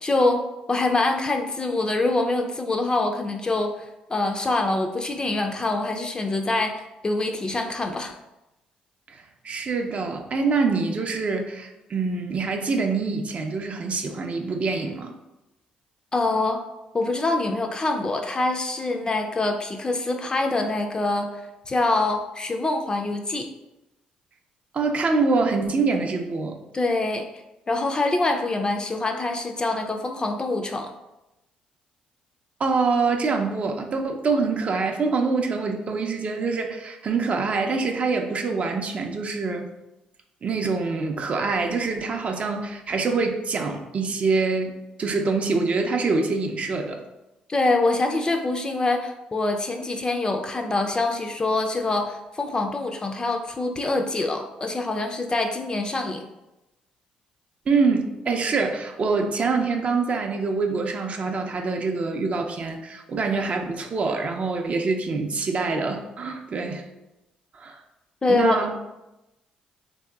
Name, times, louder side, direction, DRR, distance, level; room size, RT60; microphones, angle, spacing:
voice 1, 0.0-8.1 16.1-16.6 16.9-23.5 26.7-27.3 27.7-30.9 47.5-56.2 68.2-68.8, left 2 dB, 25° left, 4 dB, 0.4 m, -25 dB
voice 2, 9.1-15.1 24.7-26.6 32.6-39.7 40.4-44.7 45.0-47.0 57.7-66.8 67.5-67.8 68.3-68.8, right 4 dB, 45° right, 4 dB, 0.4 m, -25 dB
3.1 x 2.7 x 2.3 m, 0.96 s
supercardioid pair, 65°, 3 cm